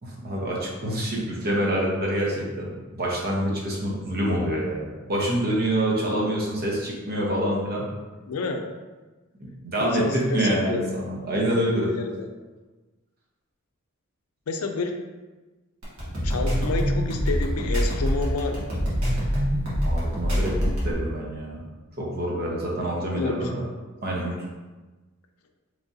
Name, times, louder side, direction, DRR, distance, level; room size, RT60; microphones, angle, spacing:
voice 1, 0.0-7.9 9.4-11.9 19.8-21.6 22.0-23.5 24.0-24.3, right 1 dB, 45° right, -3 dB, 0.9 m, -26 dB
voice 2, 8.3-8.6 9.8-10.8 11.9-12.3 14.5-15.0 16.2-18.9 23.2-23.4 24.3-24.4, left 3 dB, 85° left, 4 dB, 0.5 m, -29 dB
sound 1, 15.8-20.9, equal, 75° right, 1.4 m, -24 dB
3.7 x 3.3 x 2.7 m, 1.2 s
head